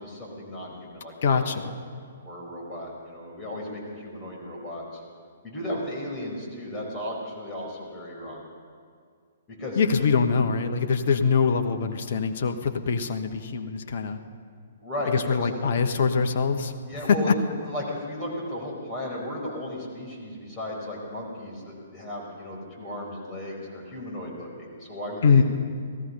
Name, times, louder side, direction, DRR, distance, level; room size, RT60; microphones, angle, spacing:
voice 1, 0.0-1.7 2.2-5.0 5.4-8.4 9.5-9.8 14.8-15.6 16.9-17.3 17.6-25.4, left 1 dB, 20° left, -3 dB, 4.9 m, -35 dB
voice 2, 1.2-1.7 9.8-14.2 15.0-16.7 17.1-17.3 25.2-25.4, left 5 dB, 50° left, 7 dB, 1.1 m, -23 dB
18.0 x 14.5 x 5.6 m, 2.1 s
figure-of-eight pair, 120°, 0 cm